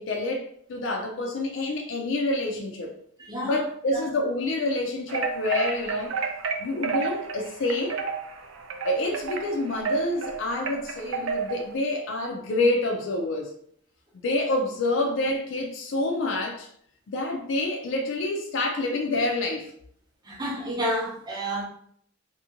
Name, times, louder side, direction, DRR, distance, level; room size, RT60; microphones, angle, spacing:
voice 1, 0.0-2.9 3.4-6.1 6.6-8.0 8.8-13.5 14.2-16.7 17.1-19.7, left 2 dB, 60° left, 0.4 m, -27 dB
voice 2, 3.3-3.6 3.9-4.1 20.3-21.6, equal, 20° right, 0.6 m, -30 dB
sound 1, 5.1-11.7, right 5 dB, 75° right, 0.4 m, -31 dB
2.8 x 2.6 x 2.5 m
head